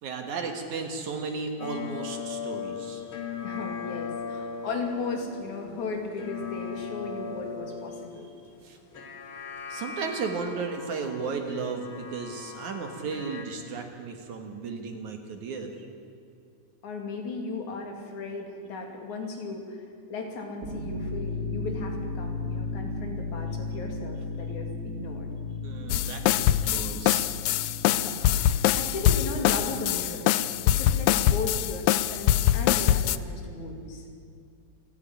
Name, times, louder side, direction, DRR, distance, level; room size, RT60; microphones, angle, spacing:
voice 1, 0.0-3.0 8.1-8.2 8.6-9.1 9.7-15.9 25.6-27.3 28.0-28.1, right 4 dB, 65° right, 4 dB, 2.9 m, -35 dB
sound 1, 1.6-13.5, left 6 dB, 45° left, 2.1 m, -39 dB
voice 2, 3.4-8.3 16.8-19.8 20.1-25.3 27.9-30.3 30.6-34.1, left 3 dB, 60° left, 2 dB, 3.9 m, -36 dB
sound 2, 20.6-32.1, left 3 dB, 25° right, 3.1 m, -36 dB
sound 3, 25.9-33.2, left 12 dB, 85° left, 1.6 m, -23 dB
28.5 x 9.6 x 10.0 m, 2.5 s
omnidirectional pair, 3.9 m